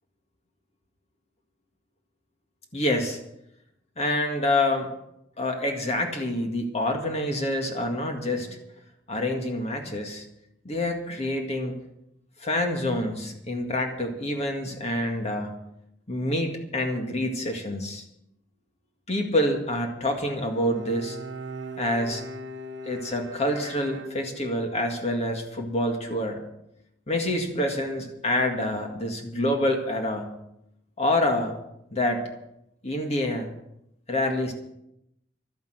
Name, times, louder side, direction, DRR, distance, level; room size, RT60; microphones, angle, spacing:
voice 1, 2.7-3.2 4.0-4.9 5.4-8.6 9.1-10.2 10.7-11.8 12.4-15.5 16.1-18.0 19.1-21.2 21.8-22.2 22.9-26.4 27.1-30.3 31.0-31.6 31.9-32.2 32.8-33.5 34.1-34.5, left 1 dB, 35° left, 3 dB, 1.9 m, -27 dB
Bowed string instrument, 20.3-24.7, right 1 dB, 70° right, 1.0 m, -40 dB
12.5 x 10.5 x 7.9 m, 0.81 s
head